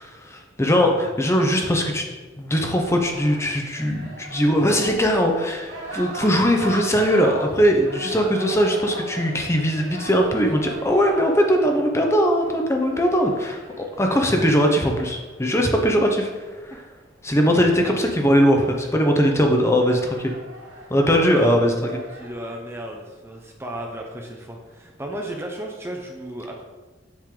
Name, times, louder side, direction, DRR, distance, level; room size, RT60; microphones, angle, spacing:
voice 1, 0.0-2.1 2.4-16.3 16.6-16.8 17.2-20.3 20.9-21.9, equal, 15° left, 2 dB, 0.9 m, -20 dB
sound 1, 2.6-16.8 18.3-18.4 18.8-19.3 19.8-22.3, right 2 dB, 85° right, 2.4 m, -39 dB
voice 2, 21.1-21.7 22.2-26.6, right 1 dB, 15° right, 1 dB, 0.7 m, -34 dB
7.4 x 6.7 x 3.8 m, 1.2 s
head